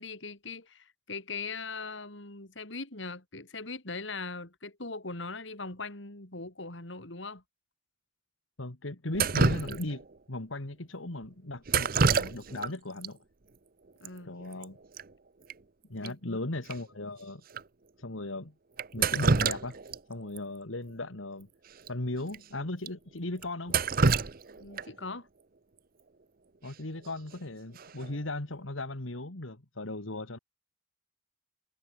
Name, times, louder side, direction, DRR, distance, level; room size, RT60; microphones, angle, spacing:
voice 1, 0.0-7.4 14.0-14.4 16.0-16.4 24.6-25.3, left 3 dB, 70° left, 3.7 m, -40 dB
voice 2, 8.6-10.0 10.3-13.2 14.3-14.8 15.9-17.4 18.0-18.5 18.9-19.8 20.1-21.5 21.9-23.8 26.6-30.4, left 2 dB, 85° left, 2.3 m, -37 dB
Drip, 9.1-10.1 11.7-12.7 13.0-13.1 14.0-14.1 14.4-14.6 15.0-15.1 15.5-15.6 16.0-16.1 16.7-16.8 17.5-17.6 18.8-20.0 20.4-20.5 21.8-21.9 22.3-22.4 22.9-23.0 23.4-25.0 27.0-27.3 27.8-28.1, right 4 dB, 45° right, 0.8 m, -27 dB
head